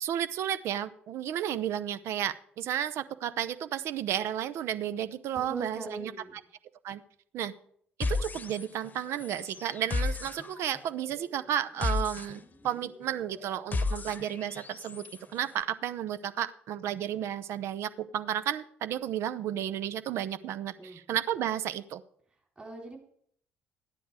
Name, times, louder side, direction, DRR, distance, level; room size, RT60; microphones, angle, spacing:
voice 1, 0.0-6.1 6.8-7.0 7.3-7.5 8.0-22.0, right 10 dB, 55° right, 13 dB, 0.7 m, -33 dB
voice 2, 5.3-6.4 20.8-21.0 22.6-23.0, right 2 dB, 20° right, 1 dB, 3.5 m, -41 dB
sound 1, 8.0-8.9 9.2-15.2, left 3 dB, 30° left, 1.0 m, -34 dB
14.0 x 10.0 x 4.8 m, 0.64 s
figure-of-eight pair, 50°, 5 cm